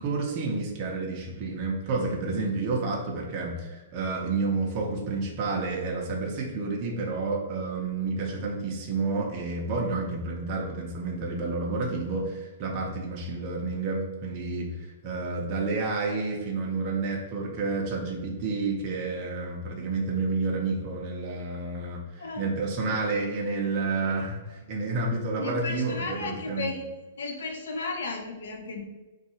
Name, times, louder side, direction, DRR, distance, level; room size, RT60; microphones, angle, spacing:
voice 1, 0.0-14.7 15.0-26.8, right 3 dB, 25° right, -2 dB, 0.5 m, -30 dB
voice 2, 22.2-22.5 25.4-26.8 27.2-28.9, left 3 dB, 80° left, 3 dB, 0.5 m, -34 dB
2.7 x 2.3 x 4.1 m, 1.2 s
hypercardioid pair, 175°, 0 cm